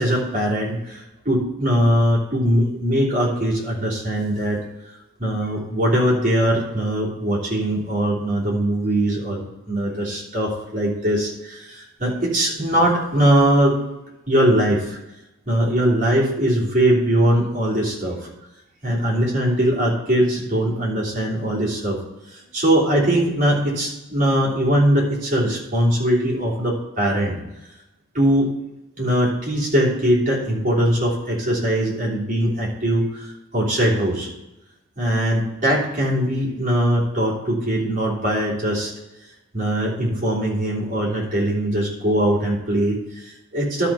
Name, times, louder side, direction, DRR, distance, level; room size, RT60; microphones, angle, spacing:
voice 1, 0.0-4.6 5.2-13.8 14.3-15.0 15.5-18.3 18.8-22.0 22.3-27.4 28.1-28.5 29.0-34.3 35.0-38.9 39.5-43.9, right 1 dB, 35° right, -5 dB, 3.1 m, -21 dB
11.5 x 4.1 x 5.8 m, 0.95 s
head